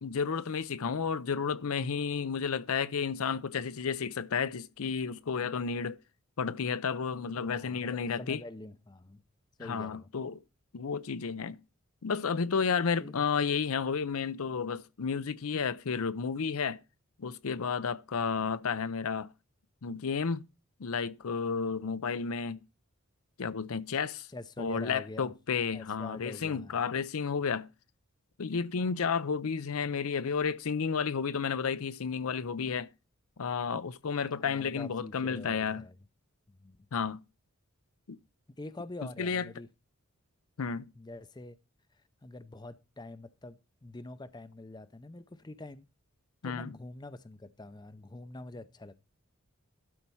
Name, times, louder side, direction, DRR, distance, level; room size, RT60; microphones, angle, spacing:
voice 1, 0.0-6.0 6.4-8.4 9.6-10.4 10.7-11.6 12.0-16.8 17.2-19.3 19.8-20.4 20.8-22.6 23.4-24.3 24.6-27.7 28.4-32.9 33.4-35.8 36.9-37.2 38.1-38.2 39.0-39.5 40.6-40.9 46.4-46.7, left 6 dB, 80° left, 0.6 m, -32 dB
voice 2, 7.4-9.2 9.6-10.1 13.0-13.3 24.3-25.3 25.7-26.8 34.3-36.0 36.5-36.8 38.6-39.7 41.0-41.6 42.2-45.8 46.4-48.9, left 2 dB, 20° left, 0.5 m, -45 dB
12.5 x 4.3 x 5.5 m
head